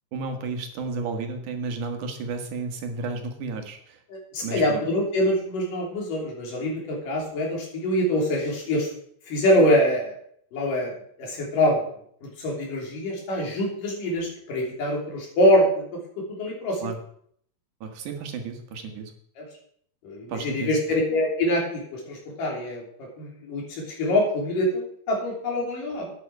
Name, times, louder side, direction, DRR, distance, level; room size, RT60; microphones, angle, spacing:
voice 1, 0.1-4.0 4.4-4.8 16.8-17.0 17.8-19.1 20.3-20.7, right 4 dB, 70° right, 5 dB, 2.9 m, -32 dB
voice 2, 4.1-8.9 9.3-10.1 10.5-10.9 11.2-11.8 12.2-15.8 16.3-16.8 19.4-19.5 20.0-26.1, left 1 dB, 90° left, -1 dB, 5.0 m, -24 dB
12.0 x 9.6 x 4.7 m, 0.64 s
omnidirectional pair, 3.7 m